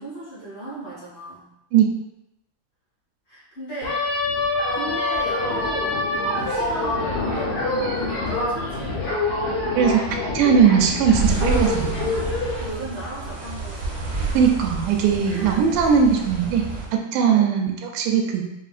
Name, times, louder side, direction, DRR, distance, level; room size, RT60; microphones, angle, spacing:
voice 1, 0.0-1.5 3.3-4.1 4.7-6.0 6.4-9.2 12.1-14.0 15.2-15.6 17.3-17.4, right 2 dB, 50° left, -10 dB, 1.7 m, -36 dB
sound 1, 3.8-12.6, left 2 dB, 80° left, 0.9 m, -25 dB
voice 2, 9.8-12.1 14.3-18.4, right 7 dB, 85° right, 2 dB, 2.1 m, -19 dB
sound 2, 11.1-16.9, right 3 dB, 65° right, 1.1 m, -29 dB
5.7 x 2.6 x 2.4 m, 0.90 s
omnidirectional pair, 3.6 m